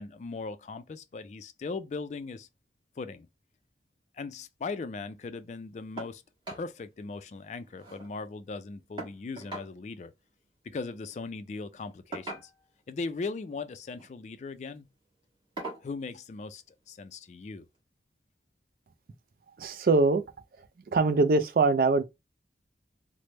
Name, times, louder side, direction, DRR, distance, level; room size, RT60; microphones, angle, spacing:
voice 1, 0.0-2.5 3.0-3.3 4.1-6.2 6.5-10.1 10.6-12.5 12.9-14.9 15.8-17.7, left 4 dB, 40° left, 0.3 m, -38 dB
sound 1, 6.0-6.2 6.4-6.7 7.0-7.1 7.4-8.1 9.0-9.7 11.0-11.2 12.1-12.8 13.8-14.1 14.6-14.8 15.6-15.9 17.1-17.2 17.7-17.8, right 2 dB, 30° right, 1.3 m, -41 dB
voice 2, 19.6-20.2 20.9-22.0, right 3 dB, 55° right, 0.3 m, -23 dB
3.2 x 2.0 x 3.0 m
head